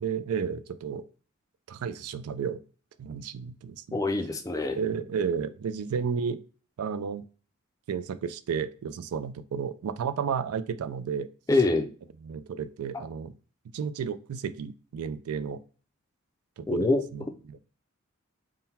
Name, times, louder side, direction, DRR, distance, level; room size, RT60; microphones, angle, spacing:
voice 1, 0.0-1.0 1.7-2.6 3.0-4.0 4.8-6.4 6.8-7.2 7.9-11.3 12.2-13.3 13.7-15.6 16.6-17.6, right 6 dB, 90° right, 13 dB, 0.4 m, -32 dB
voice 2, 3.9-4.8 11.5-11.9 16.7-17.0, left 2 dB, 15° left, 6 dB, 0.4 m, -24 dB
3.8 x 2.1 x 4.1 m, 0.37 s
head